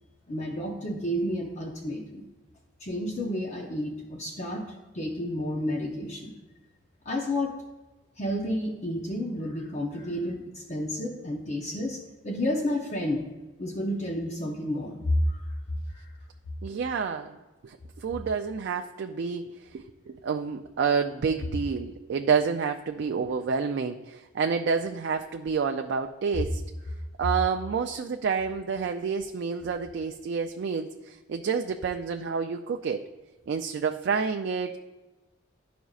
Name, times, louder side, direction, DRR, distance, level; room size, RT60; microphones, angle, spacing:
voice 1, 0.3-2.3 2.8-4.6 4.9-6.4 7.0-7.6 8.2-13.2 13.6-15.5 15.9-16.1, left 1 dB, 35° left, 0 dB, 0.7 m, -30 dB
voice 2, 16.6-17.4 17.6-26.6 27.2-33.0 33.5-34.8, right 5 dB, 65° right, 4 dB, 0.3 m, -29 dB
12.0 x 5.0 x 2.4 m, 1.1 s
head